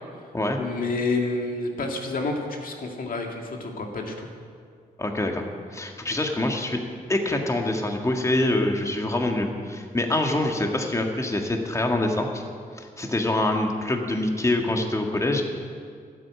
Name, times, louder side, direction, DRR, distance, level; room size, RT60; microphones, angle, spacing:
voice 1, 0.6-4.3, left 3 dB, 60° left, 2 dB, 2.1 m, -29 dB
voice 2, 5.0-5.4 5.7-6.8 7.1-12.4 12.8-15.4, left 1 dB, 20° left, 3 dB, 1.7 m, -25 dB
12.5 x 8.4 x 8.5 m, 2.1 s
cardioid pair, 65°, 16 cm